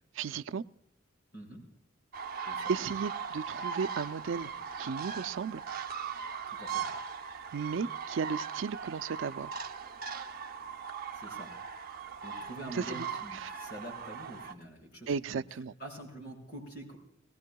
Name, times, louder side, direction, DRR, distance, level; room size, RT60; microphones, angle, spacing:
voice 1, 0.1-0.6 2.7-4.5 4.8-5.6 7.5-9.5 12.7-13.0 13.3-13.5 15.1-15.7, right 5 dB, 85° right, 12 dB, 0.4 m, -34 dB
sound 1, 2.1-14.5, right 6 dB, 50° right, 0.7 m, -39 dB
voice 2, 6.5-6.9 11.1-11.5 12.2-15.4 15.8-17.0, right 1 dB, 55° left, -1 dB, 6.1 m, -46 dB
20.5 x 19.5 x 2.3 m, 0.77 s
head